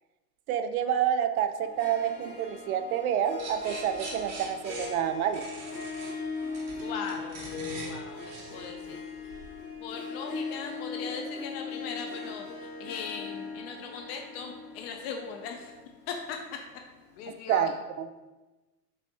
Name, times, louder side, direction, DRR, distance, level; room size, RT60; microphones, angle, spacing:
voice 1, 0.5-5.4 17.5-18.1, right 9 dB, 60° right, 9 dB, 0.6 m, -28 dB
Harp, 1.6-17.0, left 4 dB, 85° left, 1.3 m, -39 dB
sound 1, 3.4-9.5, right 3 dB, 30° right, 1.3 m, -43 dB
voice 2, 6.8-7.5 7.8-8.2 8.5-9.0 9.8-15.7 16.1-16.4 17.2-17.7, left 5 dB, 40° left, 3 dB, 0.6 m, -39 dB
5.1 x 3.4 x 2.8 m, 1.1 s
hypercardioid pair, 100°, 49 cm